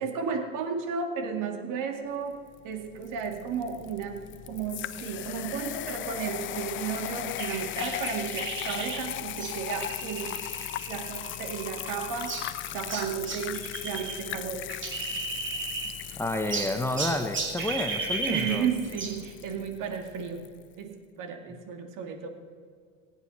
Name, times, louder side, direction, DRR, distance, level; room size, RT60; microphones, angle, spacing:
voice 1, 0.0-2.4 2.6-4.2 4.5-10.4 10.9-12.4 12.7-14.7 18.3-20.5 20.7-22.3, right 6 dB, 55° right, 4 dB, 2.3 m, -33 dB
sound 1, 2.5-20.5, left 14 dB, 30° left, 0.5 m, -38 dB
sound 2, 7.4-14.2 14.5-16.1 16.5-19.2, right 3 dB, 30° right, 2.6 m, -35 dB
voice 2, 16.2-18.7, left 1 dB, 5° left, 5 dB, 1.1 m, -30 dB
22.5 x 8.9 x 4.3 m, 2.1 s
hypercardioid pair, 90°, 39 cm